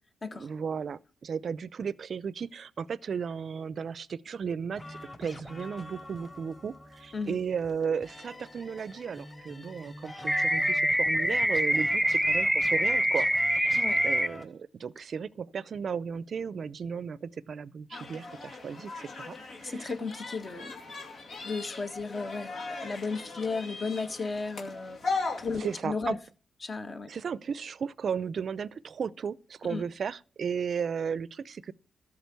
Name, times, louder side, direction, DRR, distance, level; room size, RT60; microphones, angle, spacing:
voice 1, 0.3-19.9 25.6-26.2 27.1-31.7, right 6 dB, 60° right, 0.5 m, -35 dB
sound 1, 4.7-14.4, left 1 dB, 25° left, 3.4 m, -45 dB
sound 2, 10.3-14.3, equal, ahead, 0.7 m, -25 dB
sound 3, 17.9-25.8, left 3 dB, 70° left, 2.4 m, -38 dB
voice 2, 19.6-20.8 21.4-25.0 25.4-26.2 26.6-27.1 29.6-29.8, left 4 dB, 45° left, 1.6 m, -34 dB
13.5 x 5.0 x 8.1 m
supercardioid pair, 55°, 0 cm